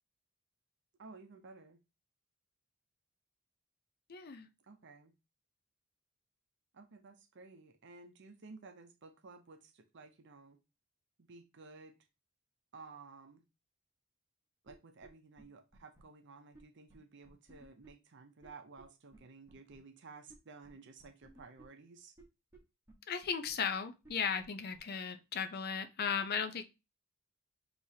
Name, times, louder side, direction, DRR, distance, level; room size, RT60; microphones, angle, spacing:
voice 1, 1.0-1.8 4.6-5.1 6.7-10.6 11.2-12.0 12.7-13.4 14.6-22.1, right 4 dB, 60° right, 0.6 m, -54 dB
voice 2, 4.1-4.5 23.1-26.6, left 6 dB, 50° left, 0.6 m, -36 dB
sound 1, 14.7-14.8 15.0-15.1 15.4-15.5 15.7-16.0 16.5-16.6 16.9-17.0 17.2-17.9 18.4-18.5 18.8-18.9 19.1-19.2 19.5-19.8 20.3-20.4 20.6-20.7 21.0-21.6 22.2-22.3 22.5-22.6 22.9-23.0 23.2-23.5 24.0-24.1 24.4-24.5 24.7-24.8, right 2 dB, 15° right, 1.3 m, -58 dB
6.3 x 3.0 x 2.8 m
head